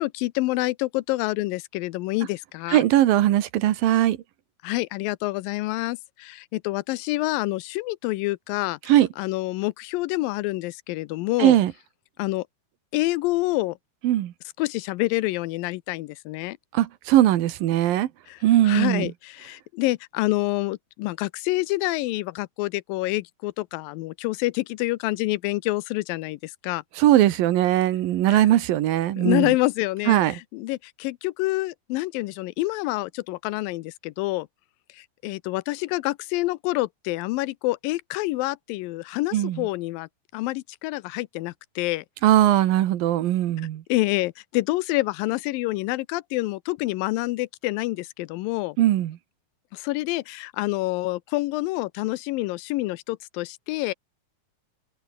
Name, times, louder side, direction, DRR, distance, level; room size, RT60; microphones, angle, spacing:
voice 1, 0.0-2.9 4.6-11.6 12.2-12.5 12.9-13.8 14.6-16.6 18.3-18.4 18.6-26.8 28.3-28.5 29.2-34.5 34.9-42.1 43.9-48.8 49.7-53.9, left 19 dB, 85° left, 2.4 m, -27 dB
voice 2, 2.7-4.2 8.9-9.1 11.4-11.7 14.0-14.3 16.7-18.1 18.4-19.1 27.0-29.5 30.1-30.3 39.3-39.6 42.2-43.8 48.8-49.2, right 13 dB, 90° right, 3.1 m, -20 dB
omnidirectional pair, 4.0 m